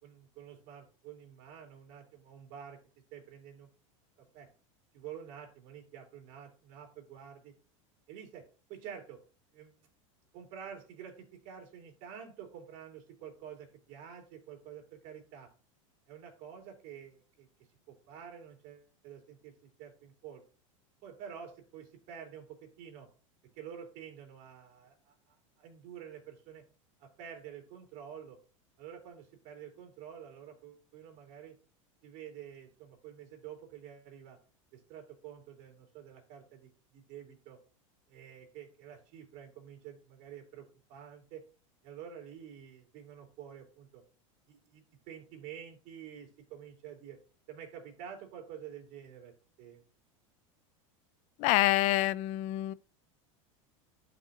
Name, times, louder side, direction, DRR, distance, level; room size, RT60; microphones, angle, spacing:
voice 1, 0.0-2.8 3.1-3.7 4.2-4.5 4.9-7.5 8.1-8.4 8.7-9.2 9.5-9.8 10.3-15.5 16.1-17.5 17.9-20.4 21.0-23.1 23.6-26.6 27.0-28.4 28.8-31.5 32.0-34.4 34.7-37.6 38.1-41.4 41.8-44.0 44.5-47.2 47.5-49.3 49.6-49.8, right 8 dB, 55° right, 3.0 m, -49 dB
voice 2, 51.4-52.7, left 16 dB, 45° left, 0.5 m, -27 dB
11.5 x 5.1 x 2.8 m
supercardioid pair, 125°, 17 cm